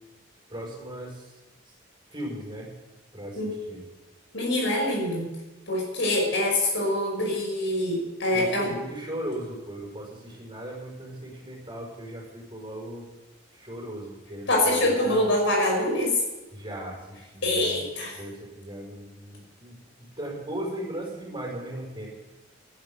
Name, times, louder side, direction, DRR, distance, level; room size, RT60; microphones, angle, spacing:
voice 1, 0.5-1.4 1.7-1.8 2.1-2.7 3.1-3.8 8.3-13.1 13.5-15.3 16.5-22.1, right 1 dB, 25° right, -3 dB, 5.5 m, -37 dB
voice 2, 4.3-5.3 5.7-8.7 14.5-16.2 17.4-18.1, left 1 dB, 70° left, 0 dB, 5.7 m, -25 dB
12.0 x 11.0 x 9.4 m, 1.1 s
head